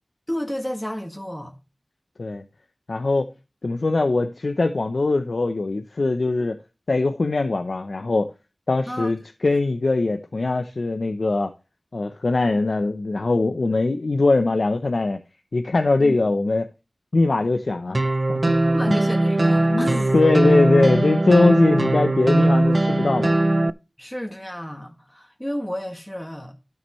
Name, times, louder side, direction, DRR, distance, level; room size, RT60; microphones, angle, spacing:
voice 1, 0.3-1.5 8.9-9.1 16.0-16.2 18.7-20.1 24.0-26.5, equal, 10° left, 1.8 m, -31 dB
voice 2, 2.9-3.3 3.6-6.6 6.9-8.3 8.7-9.2 9.4-11.5 11.9-15.2 15.5-16.7 17.1-18.0 18.3-18.6 19.7-23.3, left 3 dB, 75° left, 0.7 m, -21 dB
sound 1, 17.9-23.7, right 1 dB, 45° right, 0.4 m, -20 dB
12.5 x 7.2 x 3.1 m
wide cardioid pair, 45°, 0 cm